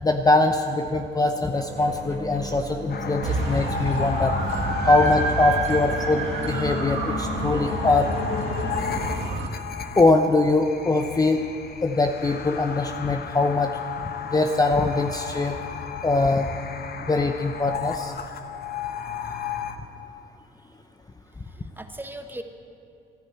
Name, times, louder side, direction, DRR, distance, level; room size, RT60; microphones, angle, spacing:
voice 1, 0.0-4.3 4.9-8.1 10.0-11.5 11.8-13.7 14.2-15.6 16.0-16.5 17.0-18.1, left 2 dB, 20° left, 5 dB, 0.8 m, -22 dB
sound 1, 1.2-6.1 6.6-7.7, right 2 dB, 40° right, 2.3 m, -39 dB
sound 2, 2.9-19.8, left 7 dB, 50° left, 1.0 m, -33 dB
sound 3, 3.2-9.5, right 3 dB, 85° right, 1.5 m, -28 dB
voice 2, 8.9-9.6 20.6-20.7 21.5-22.4, right 1 dB, 10° right, 6 dB, 1.3 m, -40 dB
15.0 x 11.5 x 8.2 m, 2.5 s
cardioid pair, 90°, 20 cm